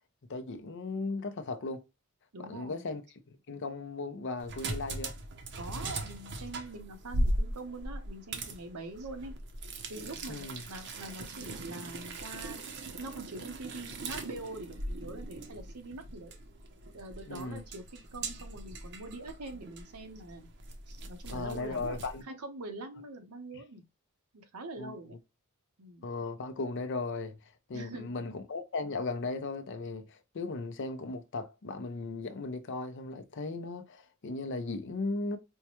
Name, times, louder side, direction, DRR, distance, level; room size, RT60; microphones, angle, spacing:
voice 1, 0.3-1.8 2.4-3.0 3.3-5.1 10.3-10.6 17.3-17.6 21.3-22.2 24.8-25.0 26.0-27.4 27.7-35.4, left 3 dB, 55° left, 0.6 m, -37 dB
voice 2, 2.3-2.9 5.6-9.4 9.9-16.3 16.9-20.5 20.9-23.8 24.3-25.2 25.8-26.1 27.7-28.1, right 2 dB, 85° right, 0.9 m, -44 dB
sound 1, 4.4-22.2, right 1 dB, 55° right, 0.7 m, -39 dB
4.5 x 2.2 x 2.9 m
head